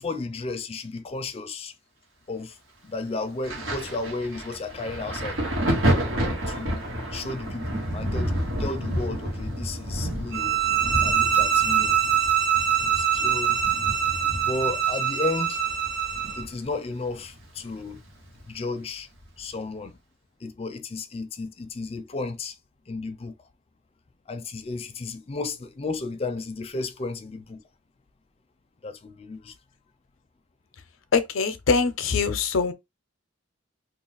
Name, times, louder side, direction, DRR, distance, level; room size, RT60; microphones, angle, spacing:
voice 1, 0.0-1.7 2.3-2.6 2.8-5.4 6.5-6.8 7.1-10.6 11.0-12.0 12.8-13.6 14.4-15.6 16.4-18.0 18.5-19.1 19.4-20.0 20.4-22.5 22.9-23.3 24.3-27.6 28.8-29.5, left 3 dB, 30° left, 0.4 m, -33 dB
Thunder, 3.4-16.8 17.0-18.4 19.2-19.4, equal, 80° right, 1.2 m, -30 dB
sound 1, 10.3-16.5, right 8 dB, 60° right, 0.9 m, -24 dB
voice 2, 31.1-32.7, left 5 dB, 85° left, 0.6 m, -23 dB
2.4 x 2.4 x 3.9 m
head